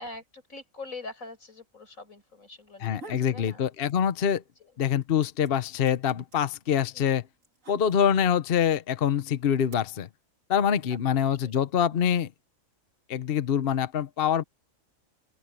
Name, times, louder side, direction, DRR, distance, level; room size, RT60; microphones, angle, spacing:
voice 1, 0.0-3.7 4.6-4.7 6.9-7.2 10.9-11.0 11.4-11.6, left 2 dB, 90° left, 5.3 m, -43 dB
sound 1, 2.7-3.4 3.8-4.5 4.7-8.3 9.1-9.7, right 2 dB, 75° right, 3.3 m, -48 dB
voice 2, 2.8-4.4 4.8-7.2 7.7-10.1 10.5-12.3 13.1-14.4, left 8 dB, 50° left, 0.9 m, -25 dB
open air
omnidirectional pair, 1.4 m